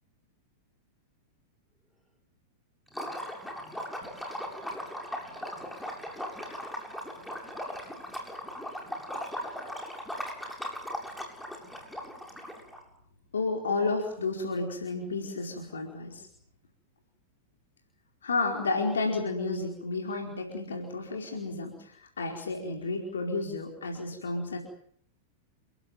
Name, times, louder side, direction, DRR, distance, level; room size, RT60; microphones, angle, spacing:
Liquid, 2.9-12.8, equal, 5° left, 7.4 m, -38 dB
voice 1, 13.3-16.3 18.2-24.6, left 3 dB, 75° left, 1 dB, 4.7 m, -31 dB
30.0 x 16.0 x 9.1 m, 0.63 s
figure-of-eight pair, 95°, 0 cm